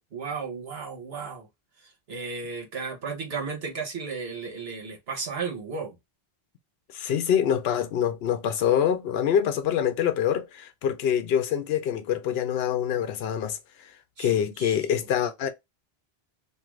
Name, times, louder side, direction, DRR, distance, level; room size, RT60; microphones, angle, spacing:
voice 1, 0.0-1.5 1.8-5.9 14.2-14.8, right 5 dB, 75° right, 1.2 m, -34 dB
voice 2, 6.9-13.6 14.2-15.5, left 9 dB, 75° left, 0.8 m, -25 dB
2.6 x 2.4 x 3.0 m
omnidirectional pair, 1.0 m